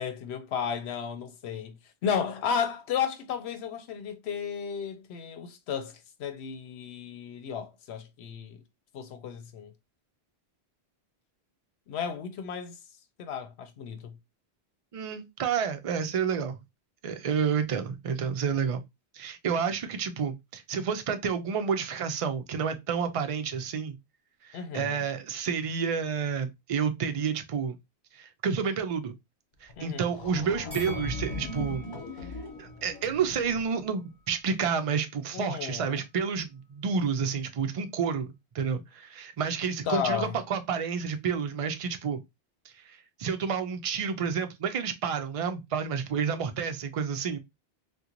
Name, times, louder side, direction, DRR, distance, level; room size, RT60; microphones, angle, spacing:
voice 1, 0.0-1.7 2.0-8.6 8.9-9.7 11.9-12.8 13.2-14.1 24.5-25.0 29.8-30.1 35.3-36.0 39.9-40.3, left 7 dB, 80° left, 0.8 m, -33 dB
voice 2, 14.9-16.6 17.0-18.8 19.1-24.0 24.4-27.8 28.1-29.1 29.6-31.9 32.6-42.2 42.9-47.4, right 6 dB, 55° right, 0.4 m, -30 dB
sound 1, 29.7-29.8 30.0-33.8, left 3 dB, 50° left, 1.1 m, -38 dB
Bell, 30.7-33.9 34.2-34.4, equal, 20° left, 1.7 m, -47 dB
3.7 x 2.2 x 2.8 m
omnidirectional pair, 1.1 m